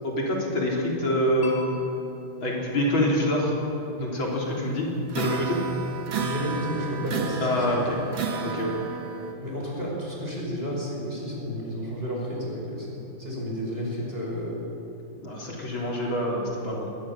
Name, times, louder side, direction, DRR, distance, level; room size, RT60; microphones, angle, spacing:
voice 1, 0.0-1.6 2.4-3.5 4.0-4.9 5.1-5.6 7.4-8.0 8.4-8.8 15.2-16.9, left 1 dB, 65° left, -3 dB, 4.4 m, -26 dB
Mallet percussion, 1.4-5.4, left 4 dB, 85° left, 4.4 m, -44 dB
sound 1, 5.1-9.3, right 5 dB, 65° right, 2.4 m, -32 dB
voice 2, 6.1-7.8 9.4-14.6, equal, 25° right, -2 dB, 5.5 m, -32 dB
21.5 x 20.0 x 7.5 m, 3.0 s
omnidirectional pair, 2.3 m